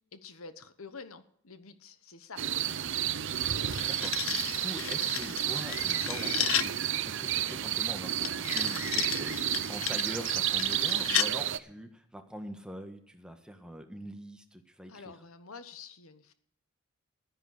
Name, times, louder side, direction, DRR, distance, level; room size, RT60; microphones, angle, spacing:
voice 1, 0.1-2.4 14.9-16.3, left 4 dB, 85° left, 12 dB, 1.2 m, -48 dB
sound 1, 2.4-11.6, right 11 dB, 60° right, 0.6 m, -31 dB
sound 2, 3.4-6.8 8.2-11.3, left 12 dB, 70° left, 0.6 m, -34 dB
voice 2, 3.5-15.1, equal, 5° right, 5 dB, 1.5 m, -44 dB
13.0 x 10.0 x 6.6 m, 0.66 s
head